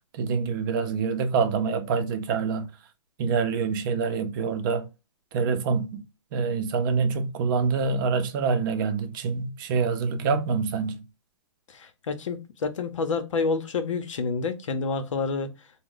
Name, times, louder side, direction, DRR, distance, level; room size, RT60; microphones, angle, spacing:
voice 1, 0.1-2.7 3.2-4.9 5.3-6.0 6.3-11.0, right 5 dB, 45° right, 0.6 m, -26 dB
voice 2, 11.7-15.5, left 4 dB, 80° left, 0.7 m, -28 dB
3.0 x 2.2 x 3.6 m
hypercardioid pair, 145°, 16 cm